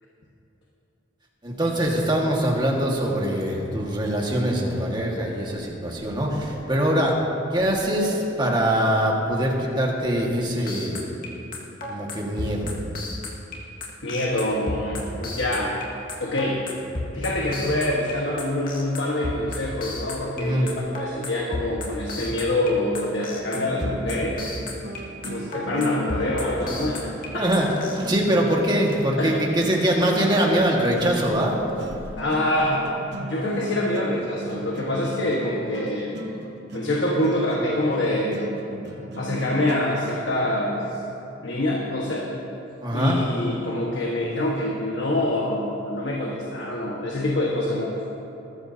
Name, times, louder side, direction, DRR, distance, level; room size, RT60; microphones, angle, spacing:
voice 1, 1.4-7.2 7.5-11.1 11.9-12.7 15.0-15.1 20.3-20.7 27.3-27.7 27.9-31.6 42.8-43.2, right 1 dB, 25° right, -2 dB, 1.8 m, -23 dB
sound 1, 10.7-27.9, left 2 dB, 50° left, 2.0 m, -32 dB
voice 2, 14.0-15.9 16.2-16.6 17.1-24.4 25.3-27.5 29.2-29.4 32.2-36.1 36.7-38.6 39.2-40.9 41.4-42.3 42.9-47.9, left 1 dB, 70° left, -3 dB, 1.5 m, -25 dB
sound 2, 23.5-41.0, right 1 dB, 60° right, 1.0 m, -38 dB
20.0 x 13.5 x 2.9 m, 3.0 s
head